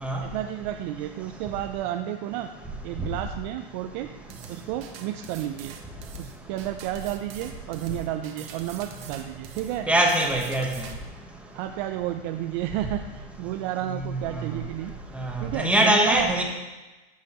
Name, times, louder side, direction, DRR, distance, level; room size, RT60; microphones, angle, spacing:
voice 1, 0.2-2.5 2.8-4.1 4.5-5.8 6.2-9.9 11.5-14.9 15.4-16.3, right 12 dB, 45° right, 6 dB, 0.5 m, -31 dB
sound 1, 4.3-11.0, right 9 dB, 70° right, 1.1 m, -44 dB
voice 2, 9.9-10.7 14.1-14.3 15.1-16.4, right 1 dB, 5° right, 0 dB, 1.1 m, -22 dB
14.5 x 5.7 x 3.0 m, 1.1 s
supercardioid pair, 135°, 31 cm